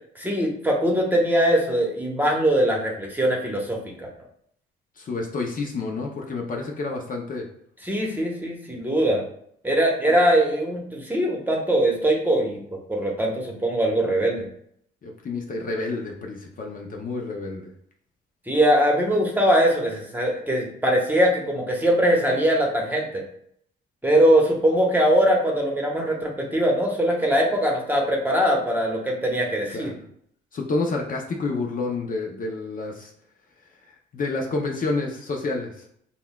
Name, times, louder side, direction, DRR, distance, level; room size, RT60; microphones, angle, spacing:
voice 1, 0.1-4.1 7.8-9.2 9.6-14.5 18.5-23.2 24.0-29.9, right 1 dB, 10° right, -1 dB, 1.0 m, -21 dB
voice 2, 5.0-7.4 15.0-17.7 29.7-30.0 30.5-33.1 33.9-35.9, left 3 dB, 45° left, 1 dB, 0.6 m, -29 dB
5.4 x 2.3 x 2.3 m, 0.68 s
cardioid pair, 90°, 20 cm